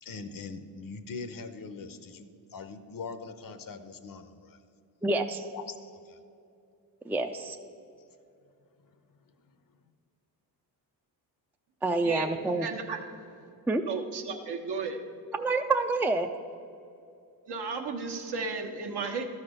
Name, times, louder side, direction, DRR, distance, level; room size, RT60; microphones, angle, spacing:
voice 1, 0.0-4.6 5.5-6.2 8.8-9.5, left 4 dB, 50° left, 10 dB, 0.8 m, -42 dB
voice 2, 5.0-5.5 7.0-7.6 11.8-12.7 13.7-13.8 15.3-16.3, right 3 dB, 5° right, 5 dB, 0.4 m, -27 dB
voice 3, 12.6-13.0 13.9-15.0 17.5-19.2, right 4 dB, 65° right, 3 dB, 1.2 m, -34 dB
12.5 x 4.2 x 6.5 m, 2.6 s
supercardioid pair, 65°, 42 cm